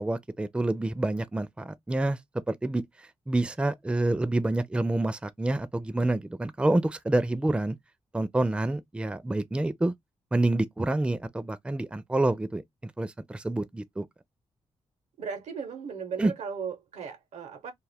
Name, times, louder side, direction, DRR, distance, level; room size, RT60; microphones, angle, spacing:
voice 1, 0.0-2.2 2.5-2.8 3.3-7.8 8.1-9.9 10.3-14.1 16.2-16.3, right 2 dB, 10° right, 0.4 m, -27 dB
voice 2, 15.2-17.7, right 6 dB, 80° right, 0.8 m, -36 dB
2.3 x 2.1 x 3.4 m
cardioid pair, 60°, 12 cm